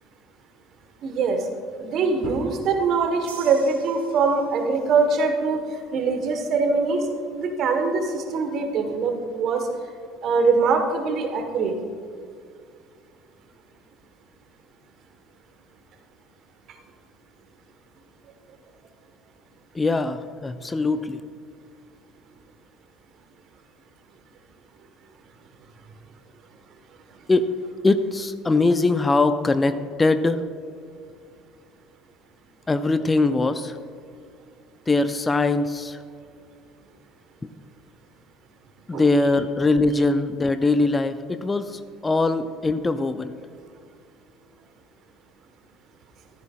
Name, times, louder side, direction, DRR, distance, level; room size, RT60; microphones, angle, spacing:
voice 1, 1.0-1.4 1.8-5.6 5.9-7.1 7.4-9.7 10.2-11.7 38.9-39.1, right 4 dB, 45° right, 5 dB, 1.4 m, -23 dB
sound 1, 3.3-4.8, right 6 dB, 75° right, 1.4 m, -45 dB
voice 2, 19.7-21.2 27.3-27.5 27.8-30.4 32.7-33.8 34.9-36.0 38.9-43.4, left 3 dB, 20° left, 11 dB, 0.5 m, -22 dB
14.5 x 13.5 x 2.5 m, 2.3 s
figure-of-eight pair, 60°, 0 cm